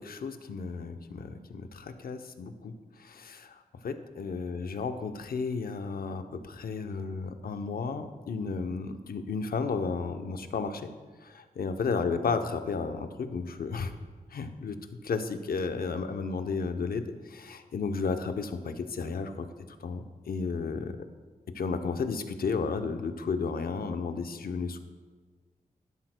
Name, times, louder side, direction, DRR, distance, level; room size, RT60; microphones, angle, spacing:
voice 1, 0.0-2.7 3.0-10.9 11.2-13.9 14.3-14.8 15.0-19.5 19.8-21.0 21.5-24.8, left 4 dB, 75° left, 8 dB, 0.7 m, -33 dB
12.0 x 11.0 x 2.2 m, 1.4 s
cardioid pair, 60°, 16 cm